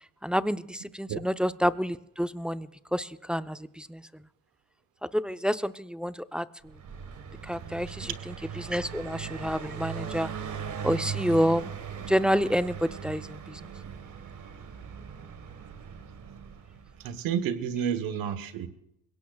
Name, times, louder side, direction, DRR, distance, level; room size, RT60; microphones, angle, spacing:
voice 1, 0.2-4.0 5.1-6.7 7.4-10.3 10.8-11.7 12.1-13.7, equal, 5° right, 11 dB, 0.7 m, -29 dB
Car passing by, 6.6-17.3, right 7 dB, 60° right, 1.6 m, -39 dB
voice 2, 17.0-18.7, right 8 dB, 90° right, 11 dB, 1.2 m, -30 dB
22.0 x 17.0 x 2.4 m, 0.78 s
supercardioid pair, 65°, 34 cm